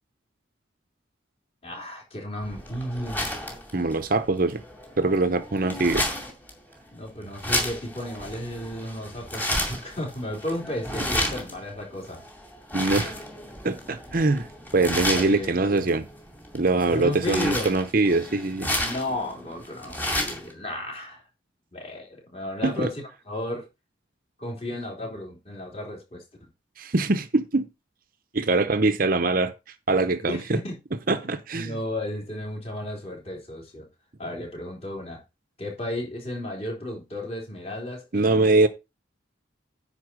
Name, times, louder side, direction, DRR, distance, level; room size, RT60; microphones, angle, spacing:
voice 1, 1.6-3.3 6.9-12.2 15.1-15.8 16.9-17.7 18.8-21.2 21.7-23.7 24.4-26.2 30.3-30.8 31.2-33.9 34.2-35.2 35.6-38.5, left 1 dB, 30° left, 3.6 m, -33 dB
sound 1, 2.4-20.5, left 1 dB, 10° left, 2.4 m, -32 dB
voice 2, 3.7-4.6 5.0-6.1 12.7-13.1 13.6-16.1 16.5-18.7 22.6-22.9 26.8-27.7 28.3-29.5 29.9-30.4 31.1-31.8 38.1-38.7, right 2 dB, 45° right, 0.7 m, -23 dB
9.8 x 4.1 x 6.2 m
head